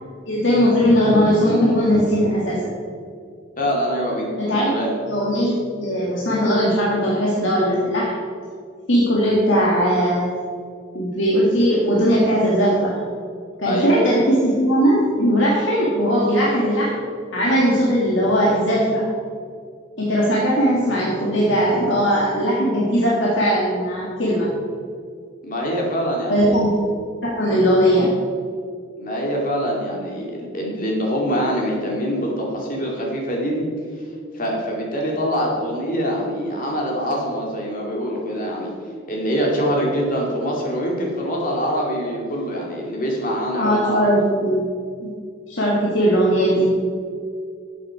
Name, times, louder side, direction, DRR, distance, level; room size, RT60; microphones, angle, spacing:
voice 1, 0.3-2.7 4.4-4.7 5.0-8.2 8.9-10.3 10.9-13.0 13.6-17.0 17.3-19.1 20.0-24.5 26.3-26.7 27.2-28.1 43.6-44.6 45.0-45.1 45.5-46.8, equal, 65° left, -5 dB, 1.8 m, -19 dB
voice 2, 3.6-4.9 13.6-14.0 25.4-26.6 29.0-33.7 34.3-38.7 39.1-44.1, equal, 40° left, -2 dB, 2.4 m, -24 dB
12.0 x 7.2 x 4.7 m, 2.2 s
head